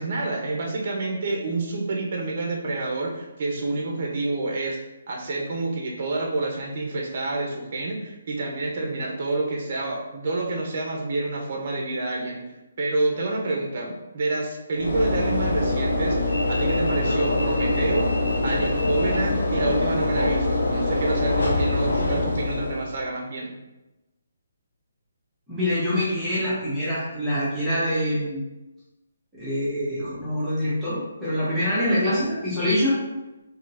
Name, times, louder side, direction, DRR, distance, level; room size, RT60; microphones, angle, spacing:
voice 1, 0.0-4.8 5.1-12.4 12.8-16.2 16.5-18.1 18.4-23.5, right 2 dB, 45° right, 0 dB, 0.8 m, -28 dB
Train / Engine / Alarm, 14.8-23.0, left 2 dB, 85° left, 0.7 m, -24 dB
voice 2, 25.5-28.5 29.4-33.0, left 1 dB, 5° right, -11 dB, 1.1 m, -25 dB
3.7 x 2.8 x 2.6 m, 1.0 s
hypercardioid pair, 165°, 0 cm